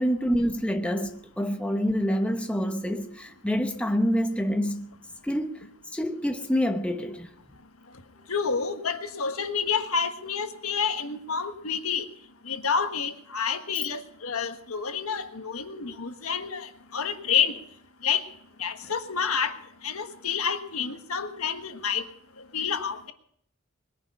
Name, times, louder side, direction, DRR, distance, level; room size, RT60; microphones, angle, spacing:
voice 1, 0.0-4.9 5.2-7.3, equal, 5° left, 1.0 m, -27 dB
voice 2, 8.3-12.1 12.5-17.6 18.0-18.2 18.6-19.5 19.8-22.1 22.5-23.1, left 6 dB, 85° left, 1.5 m, -29 dB
21.0 x 10.5 x 5.5 m
head